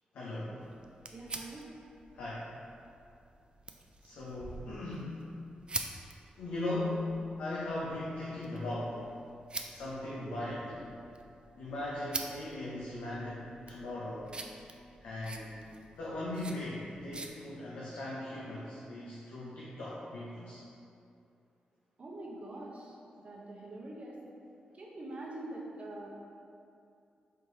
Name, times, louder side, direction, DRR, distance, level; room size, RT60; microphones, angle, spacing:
voice 1, 0.1-0.6 2.1-2.5 4.0-5.2 6.4-7.1 7.4-9.0 9.7-10.6 11.6-14.3 15.0-15.6 16.0-20.6, left 1 dB, 85° left, -7 dB, 0.5 m, -38 dB
sound 1, 0.6-17.3, right 3 dB, 35° right, 0.3 m, -46 dB
voice 2, 1.1-1.6 10.2-11.0 22.0-22.9 23.2-24.2 24.7-26.1, right 1 dB, 50° right, -3 dB, 0.8 m, -44 dB
4.3 x 3.1 x 2.7 m, 2.6 s
cardioid pair, 60°, 3 cm